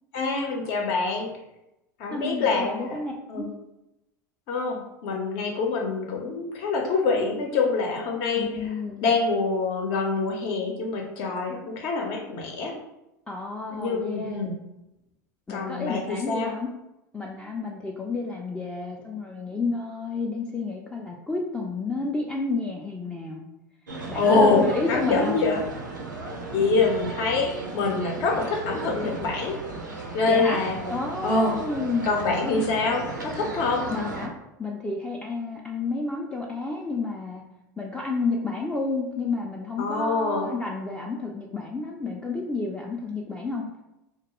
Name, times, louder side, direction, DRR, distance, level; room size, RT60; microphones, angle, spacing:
voice 1, 0.1-1.3 2.0-3.0 3.3-3.5 4.5-8.7 9.0-12.7 13.7-14.6 15.5-16.5 24.1-25.6 26.5-29.6 30.1-31.0 31.2-31.6 32.0-33.9 39.8-40.5, left 3 dB, 55° left, 2 dB, 0.6 m, -25 dB
voice 2, 2.1-3.5 8.4-9.1 13.3-14.5 15.5-16.7 17.1-23.5 24.1-25.3 30.3-30.6 30.9-32.1 33.9-34.3 34.6-37.4 37.8-43.6, left 3 dB, 10° left, -1 dB, 0.3 m, -31 dB
sound 1, 23.9-34.3, right 3 dB, 90° right, 0.4 m, -36 dB
2.3 x 2.1 x 2.9 m, 0.92 s
hypercardioid pair, 80°, 10 cm